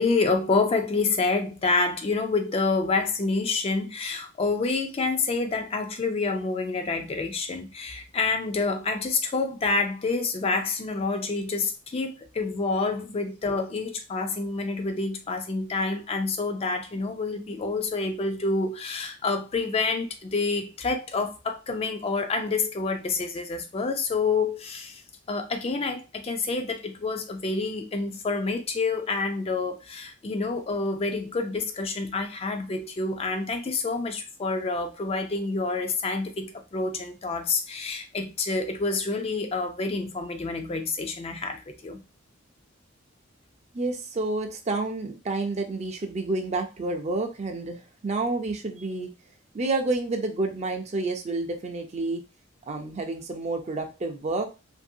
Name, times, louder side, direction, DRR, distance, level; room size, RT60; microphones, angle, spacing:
voice 1, 0.0-25.0 25.3-42.0, left 3 dB, 30° left, 0.4 m, -28 dB
voice 2, 43.7-47.8 48.0-49.1 49.5-52.2 52.7-54.5, right 2 dB, 35° right, 0.5 m, -29 dB
2.6 x 2.6 x 2.6 m
head